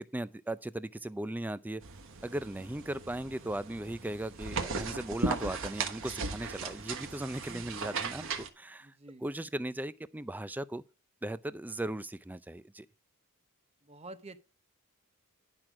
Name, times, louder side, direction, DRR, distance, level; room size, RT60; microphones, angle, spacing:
voice 1, 0.1-1.8 2.2-8.3 8.6-8.9 9.2-10.8 11.2-12.9, right 1 dB, 10° right, 0.4 m, -37 dB
sound 1, 1.8-8.5, right 4 dB, 60° right, 1.3 m, -37 dB
voice 2, 7.5-8.0 8.8-9.2 13.8-14.4, right 2 dB, 30° right, 0.8 m, -49 dB
10.5 x 6.1 x 4.8 m
head